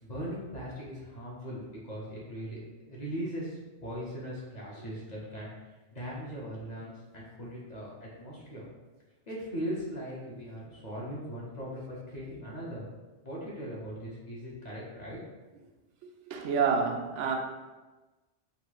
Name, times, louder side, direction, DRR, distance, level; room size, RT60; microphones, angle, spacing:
voice 1, 0.0-8.7 9.3-12.9 13.2-15.2, equal, 40° left, -5 dB, 1.1 m, -39 dB
voice 2, 16.0-17.3, right 6 dB, 85° right, 3 dB, 0.9 m, -29 dB
3.9 x 2.3 x 4.6 m, 1.2 s
omnidirectional pair, 1.2 m